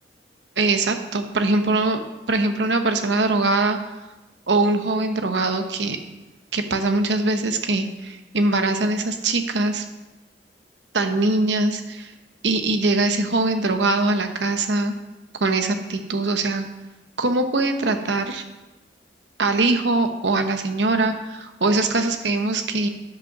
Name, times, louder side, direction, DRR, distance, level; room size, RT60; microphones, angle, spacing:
voice 1, 0.6-2.0 2.3-3.8 4.5-6.0 6.5-9.8 10.9-12.1 12.4-14.9 15.4-16.6 17.2-18.4 19.4-22.9, right 2 dB, 80° right, 7 dB, 1.0 m, -22 dB
11.0 x 5.3 x 6.0 m, 1.1 s
head